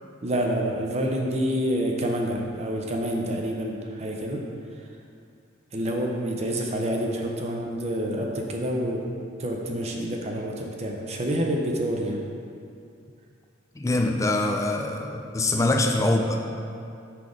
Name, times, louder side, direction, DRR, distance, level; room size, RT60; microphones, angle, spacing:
voice 1, 0.2-4.4 5.7-9.0 9.4-12.2, equal, 35° right, 0 dB, 0.6 m, -27 dB
voice 2, 13.8-16.4, left 2 dB, 15° left, 3 dB, 0.4 m, -24 dB
5.8 x 3.8 x 4.9 m, 2.5 s
head